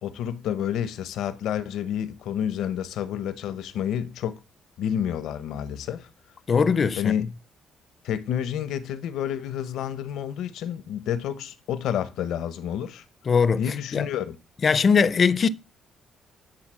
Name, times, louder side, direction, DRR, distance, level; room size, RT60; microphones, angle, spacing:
voice 1, 0.0-4.4 4.8-6.1 7.0-7.3 8.0-13.0 13.5-14.4, left 9 dB, 80° left, 0.8 m, -29 dB
voice 2, 6.5-7.1 13.3-13.6 13.9-14.1 14.6-15.5, left 5 dB, 45° left, 0.5 m, -20 dB
10.5 x 4.0 x 6.2 m
cardioid pair, 90°, 0 cm